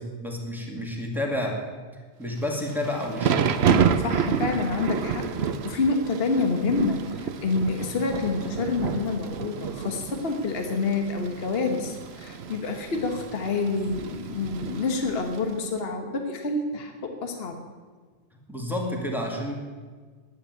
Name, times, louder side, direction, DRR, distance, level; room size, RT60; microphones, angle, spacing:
voice 1, 0.0-1.7 1.9-3.6 18.5-19.5, left 1 dB, ahead, -1 dB, 2.3 m, -30 dB
Thunder / Rain, 2.5-15.5, right 7 dB, 60° right, 0.9 m, -29 dB
voice 2, 4.0-17.6, left 3 dB, 55° left, 4 dB, 1.4 m, -28 dB
10.0 x 9.7 x 9.5 m, 1.5 s
omnidirectional pair, 1.3 m